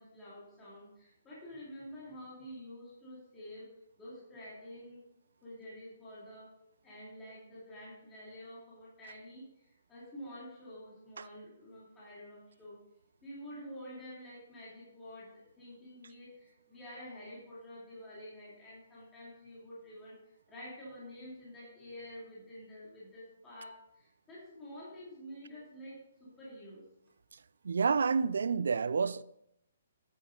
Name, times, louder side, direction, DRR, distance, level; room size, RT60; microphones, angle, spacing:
voice 1, 0.0-3.7 4.0-5.0 5.4-6.5 6.8-12.8 13.2-26.8, equal, 10° left, 2.3 m, -49 dB
voice 2, 27.6-29.2, right 5 dB, 80° right, 0.3 m, -29 dB
8.2 x 8.0 x 3.7 m
hypercardioid pair, 175°, 0 cm